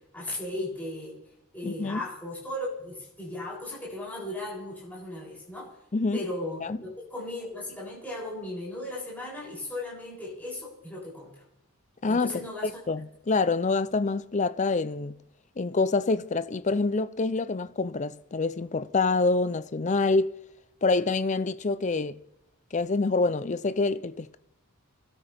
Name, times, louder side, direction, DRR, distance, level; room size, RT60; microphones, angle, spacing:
voice 1, 0.1-1.2 1.5-5.8 6.1-11.4 12.1-12.8, left 1 dB, 5° left, 7.4 m, -36 dB
voice 2, 1.6-2.0 5.9-6.2 6.6-6.8 12.0-12.3 12.6-15.2 15.6-20.3 20.8-22.2 22.7-24.4, left 3 dB, 30° left, 0.5 m, -26 dB
30.0 x 12.5 x 3.5 m
head